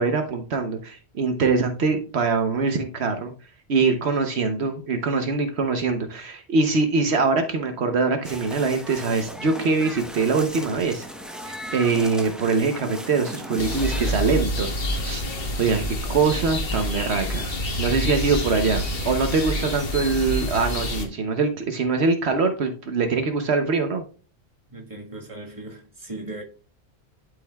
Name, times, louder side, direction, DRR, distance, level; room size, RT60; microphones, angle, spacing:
voice 1, 0.0-3.3 3.7-11.1 11.5-14.7 14.9-15.2 15.6-24.0, right 4 dB, 75° right, 1.1 m, -23 dB
sound 1, 8.2-14.1, equal, ahead, 0.9 m, -37 dB
sound 2, 13.6-21.1, left 1 dB, 60° left, 1.4 m, -28 dB
voice 2, 24.7-26.4, right 2 dB, 30° right, 1.7 m, -37 dB
11.5 x 5.3 x 2.3 m
omnidirectional pair, 1.1 m